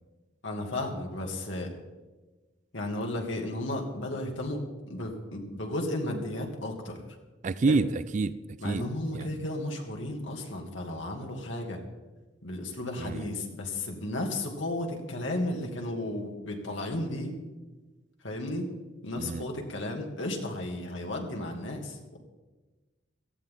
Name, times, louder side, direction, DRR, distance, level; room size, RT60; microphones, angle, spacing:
voice 1, 0.4-1.7 2.7-7.0 7.7-7.8 8.6-11.8 12.4-17.3 18.2-18.7 19.0-22.2, left 1 dB, 85° left, 2.4 m, -34 dB
voice 2, 7.4-8.4 8.6-8.8 9.1-9.3 13.0-13.2 19.2-19.4, right 3 dB, 40° right, 0.3 m, -27 dB
18.0 x 14.5 x 3.8 m
head